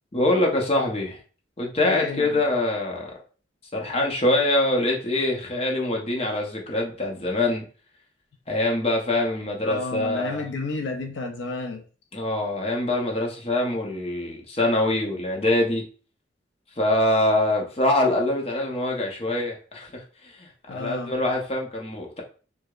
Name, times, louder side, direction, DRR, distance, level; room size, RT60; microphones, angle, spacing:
voice 1, 0.1-1.2 1.6-3.1 3.7-7.6 8.5-10.5 12.1-15.8 16.8-22.2, left 1 dB, 30° left, 0.7 m, -24 dB
voice 2, 1.8-2.4 9.6-11.8 20.7-21.1, left 3 dB, 70° left, 0.4 m, -31 dB
4.6 x 2.1 x 2.3 m
head